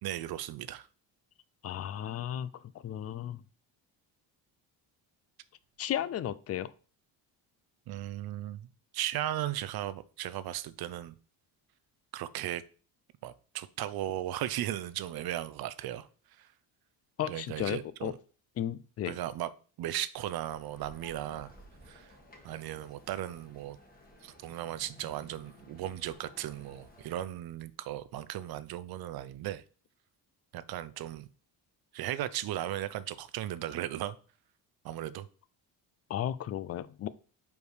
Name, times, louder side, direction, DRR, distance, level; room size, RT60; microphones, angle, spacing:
voice 1, 0.0-0.9 7.9-8.7 8.9-11.2 12.1-12.6 13.2-16.1 16.4-16.5 17.3-18.2 19.0-19.5 19.8-21.5 21.9-22.2 22.4-23.8 24.2-29.6 30.5-31.3 31.9-34.2 34.8-35.3, right 13 dB, 60° right, 0.6 m, -36 dB
voice 2, 1.6-3.4 5.8-6.7 17.2-18.1 18.6-19.1 36.1-37.1, left 11 dB, 40° left, 0.4 m, -34 dB
sound 1, 20.1-27.2, left 1 dB, 20° left, 1.5 m, -56 dB
5.3 x 4.6 x 4.9 m
cardioid pair, 155°, 41 cm